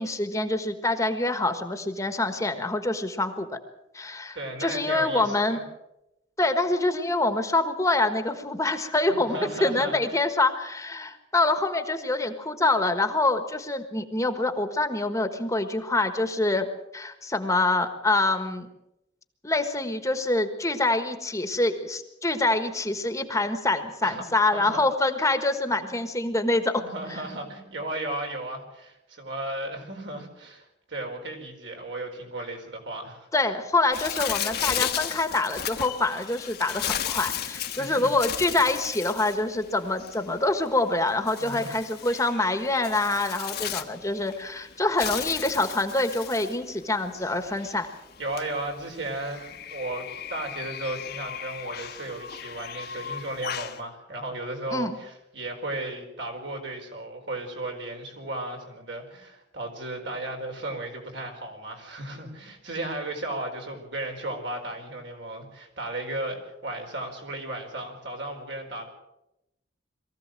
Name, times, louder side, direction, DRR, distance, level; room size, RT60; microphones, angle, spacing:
voice 1, 0.0-3.5 3.9-5.6 6.4-16.7 16.9-18.7 19.4-26.8 27.1-27.2 33.3-47.9 54.7-55.0, left 2 dB, 15° left, 8 dB, 1.4 m, -26 dB
voice 2, 4.3-5.6 9.1-10.2 24.0-24.2 24.5-24.8 26.8-33.3 37.7-38.1 41.4-41.7 48.2-50.0 50.3-68.9, right 1 dB, 70° right, 2 dB, 4.5 m, -35 dB
Bird, 33.9-53.8, left 9 dB, 55° left, 1.2 m, -35 dB
22.5 x 15.0 x 7.7 m, 0.88 s
head